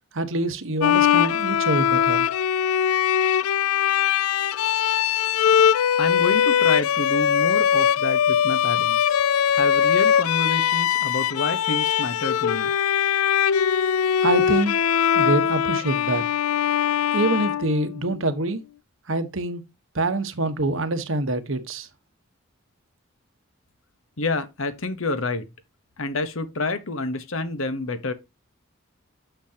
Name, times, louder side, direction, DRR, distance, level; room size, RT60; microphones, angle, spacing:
voice 1, 0.1-2.3 14.2-14.7 15.1-16.2 17.1-18.6 19.1-19.6 19.9-21.9, right 2 dB, 65° right, 1.2 m, -25 dB
Bowed string instrument, 0.8-18.2, left 9 dB, 85° left, 0.4 m, -21 dB
voice 2, 6.0-9.2 9.5-12.7 24.2-25.5 26.0-28.1, left 2 dB, 70° left, 1.1 m, -28 dB
9.1 x 6.9 x 2.8 m
head